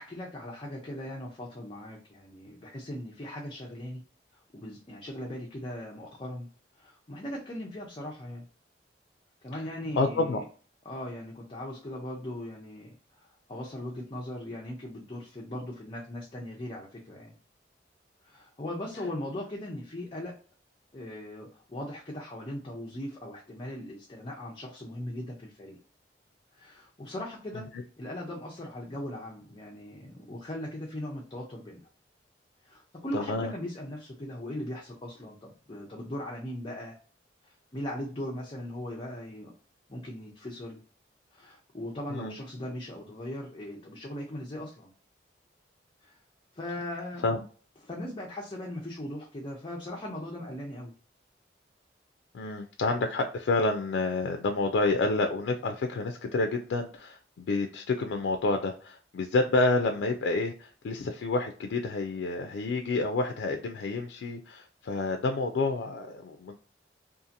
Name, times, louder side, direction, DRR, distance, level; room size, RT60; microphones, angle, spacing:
voice 1, 0.0-4.0 4.5-6.5 6.8-8.5 9.4-10.4 10.9-13.0 13.5-17.4 18.2-20.4 20.9-25.8 26.5-27.7 28.0-31.9 32.6-36.9 37.5-39.5 39.9-40.8 41.3-44.9 46.0-46.2 46.6-47.3 47.8-50.9, left 1 dB, 30° left, -2 dB, 0.5 m, -39 dB
voice 2, 10.0-10.4 27.5-27.7 33.1-33.5 42.1-42.3 47.2-47.4 52.3-66.6, left 3 dB, 80° left, 4 dB, 0.3 m, -29 dB
2.7 x 2.5 x 2.5 m, 0.41 s
head